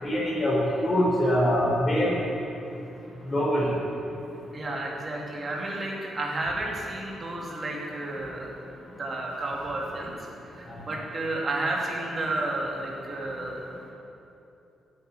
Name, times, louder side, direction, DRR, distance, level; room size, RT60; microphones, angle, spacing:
voice 1, 0.0-2.1 3.3-3.7, equal, 20° left, -5 dB, 4.6 m, -23 dB
voice 2, 4.5-8.5 9.0-10.1 10.5-13.6, right 2 dB, 25° right, -2 dB, 2.8 m, -31 dB
13.5 x 9.8 x 9.3 m, 2.9 s
cardioid pair, 175°, 0 cm